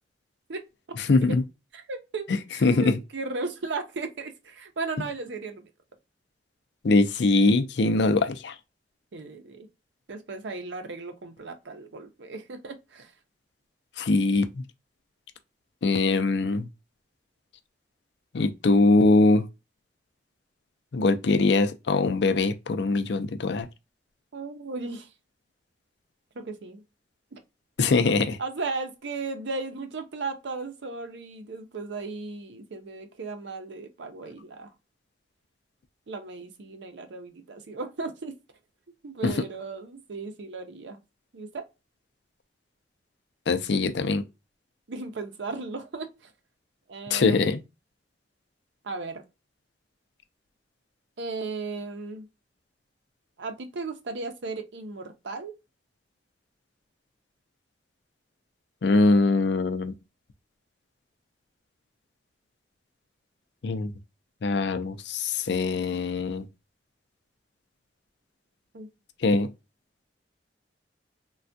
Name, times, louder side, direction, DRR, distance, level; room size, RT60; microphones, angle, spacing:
voice 1, 1.1-1.4 2.3-3.0 6.8-8.5 14.0-14.6 15.8-16.7 18.3-19.4 20.9-23.7 27.8-28.4 39.2-39.3 43.5-44.2 47.1-47.6 58.8-59.9 63.6-63.9 64.4-66.5 69.2-69.5, left 3 dB, 70° left, 0.5 m, -22 dB
voice 2, 1.7-2.2 2.5-5.7 9.1-9.7 10.1-13.1 24.3-25.1 26.4-26.8 27.3-27.4 28.4-34.7 36.1-38.3 39.0-41.0 41.3-41.6 44.9-46.3 46.9-47.5 48.8-49.2 51.2-52.3 53.4-55.5 68.7-68.9, right 3 dB, 85° right, 0.6 m, -36 dB
3.3 x 2.3 x 2.6 m
head